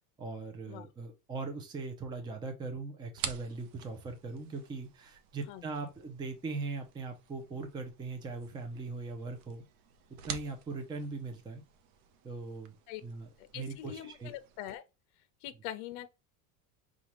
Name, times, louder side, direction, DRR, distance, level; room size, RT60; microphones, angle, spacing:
voice 1, 0.2-9.6 10.1-11.6 12.2-12.8 13.0-14.3, right 3 dB, 10° right, 0.5 m, -40 dB
sound 1, 3.2-14.8, right 8 dB, 80° right, 0.9 m, -48 dB
voice 2, 5.5-5.9 12.9-13.0 13.4-14.8 15.4-16.1, left 12 dB, 55° left, 0.8 m, -43 dB
5.5 x 2.4 x 3.0 m
cardioid pair, 155°, 41 cm